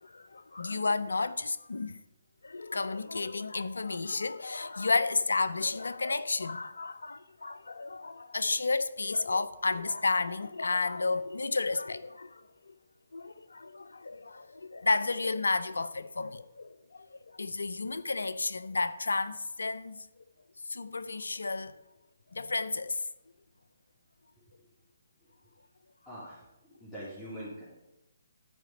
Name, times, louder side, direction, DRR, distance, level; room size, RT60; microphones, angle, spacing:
voice 1, 0.0-2.0 2.4-12.8 13.1-20.1 20.7-21.7 22.3-23.1, left 3 dB, 80° left, 0.5 m, -32 dB
voice 2, 26.1-27.6, equal, 10° left, 3.0 m, -43 dB
12.5 x 5.1 x 5.2 m
figure-of-eight pair, 140°, 0 cm